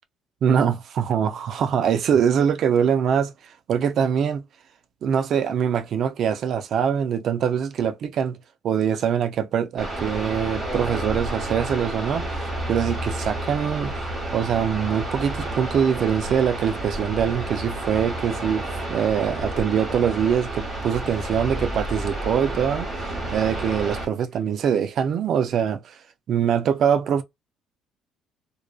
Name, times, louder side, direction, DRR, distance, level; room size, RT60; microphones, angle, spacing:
voice 1, 0.4-4.4 5.0-8.4 8.6-13.9 14.3-26.0 26.3-27.2, right 8 dB, 60° right, 0.3 m, -23 dB
sound 1, 9.8-24.1, right 1 dB, 20° right, 1.2 m, -30 dB
sound 2, 20.7-23.7 24.0-24.1, left 1 dB, 20° left, 0.5 m, -36 dB
2.5 x 2.2 x 2.3 m
cardioid pair, 110°, 0 cm